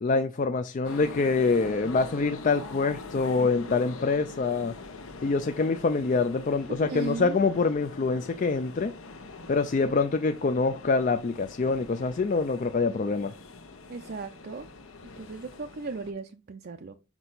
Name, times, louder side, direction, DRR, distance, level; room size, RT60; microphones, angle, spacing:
voice 1, 0.0-4.7 5.2-8.9 9.5-13.3, left 4 dB, 35° left, 0.4 m, -25 dB
sound 1, 0.8-16.1, left 3 dB, 80° left, 1.0 m, -43 dB
voice 2, 6.7-7.4 13.9-14.7 15.2-16.9, right 3 dB, 45° right, 0.5 m, -36 dB
6.1 x 5.4 x 3.9 m
head